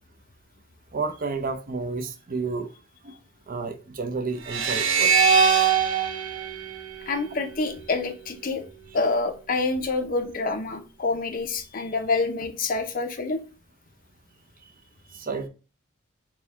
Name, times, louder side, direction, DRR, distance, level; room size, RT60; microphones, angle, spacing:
voice 1, 0.9-2.7 3.0-3.2 3.5-5.3 15.1-15.5, right 4 dB, 45° right, 0.6 m, -31 dB
sound 1, 4.4-7.7, right 6 dB, 70° right, 1.0 m, -22 dB
voice 2, 7.1-8.6 8.9-13.4, left 3 dB, 45° left, 0.6 m, -27 dB
4.5 x 2.2 x 3.4 m
head